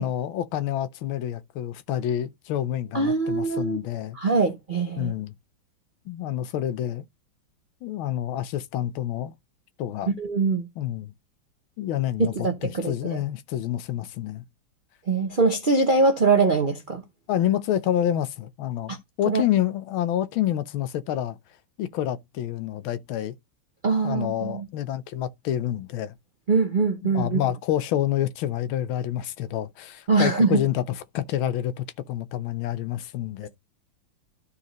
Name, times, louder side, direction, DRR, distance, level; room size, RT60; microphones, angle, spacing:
voice 1, 0.0-4.2 5.0-5.3 6.1-7.0 7.8-9.3 9.8-10.1 10.8-11.1 11.8-14.4 17.3-18.9 19.2-21.4 21.8-23.3 24.0-26.1 27.0-33.5, left 11 dB, 85° left, 1.5 m, -28 dB
voice 2, 2.9-3.8 4.1-5.1 10.2-10.7 12.2-12.9 15.1-17.0 18.9-19.0 19.3-19.4 23.8-24.7 26.5-27.4 30.1-30.6, right 4 dB, 60° right, 0.5 m, -22 dB
12.5 x 4.2 x 3.9 m
omnidirectional pair, 2.2 m